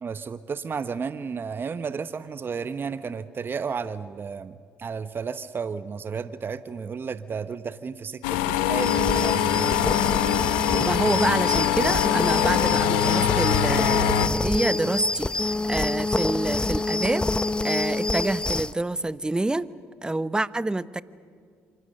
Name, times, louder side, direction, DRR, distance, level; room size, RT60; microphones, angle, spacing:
voice 1, 0.0-9.7, right 5 dB, 40° right, 13 dB, 0.9 m, -33 dB
sound 1, 8.2-14.3, left 12 dB, 90° left, 0.9 m, -23 dB
sound 2, 8.8-18.7, left 2 dB, 15° left, 0.6 m, -26 dB
voice 2, 10.7-17.3 17.6-19.7 20.0-21.0, right 2 dB, 15° right, 16 dB, 0.9 m, -27 dB
26.5 x 25.5 x 6.6 m, 2.1 s
hypercardioid pair, 60°, 6 cm